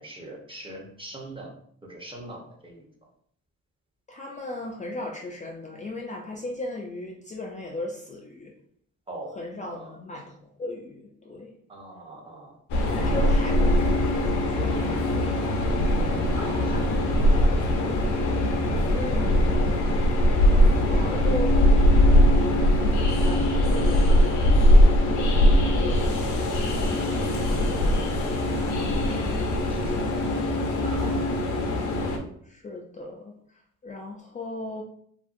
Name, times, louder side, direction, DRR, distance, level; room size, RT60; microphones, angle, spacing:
voice 1, 0.0-1.5 1.8-2.9 9.1-10.0 11.7-12.6 16.3-18.0 20.8-21.4 23.2-23.4 23.7-25.7 26.3-28.0 28.5-29.4 29.7-30.1 30.8-31.3, right 1 dB, 15° right, -1 dB, 0.8 m, -41 dB
voice 2, 4.1-8.5 9.4-11.5 13.0-15.6 18.9-20.1 20.9-21.5 22.5-22.9 32.4-34.8, left 2 dB, 25° left, -1 dB, 0.4 m, -37 dB
Train, 12.7-32.2, left 1 dB, 75° left, 0.7 m, -21 dB
2.8 x 2.6 x 2.5 m, 0.64 s
cardioid pair, 90°, 30 cm